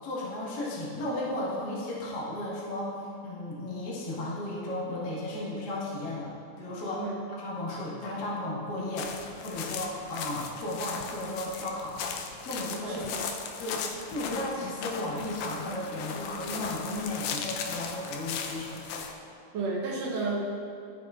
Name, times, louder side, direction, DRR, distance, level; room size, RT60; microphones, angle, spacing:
voice 1, 0.0-2.9 3.2-6.3 6.6-7.1 7.4-12.0 12.4-13.0 13.6-18.8, left 1 dB, 50° left, -6 dB, 1.2 m, -34 dB
sound 1, 9.0-19.1, left 6 dB, 80° left, 1.8 m, -37 dB
voice 2, 19.5-20.5, right 3 dB, 70° right, -3 dB, 1.6 m, -31 dB
13.5 x 6.1 x 2.4 m, 2.5 s
omnidirectional pair, 4.0 m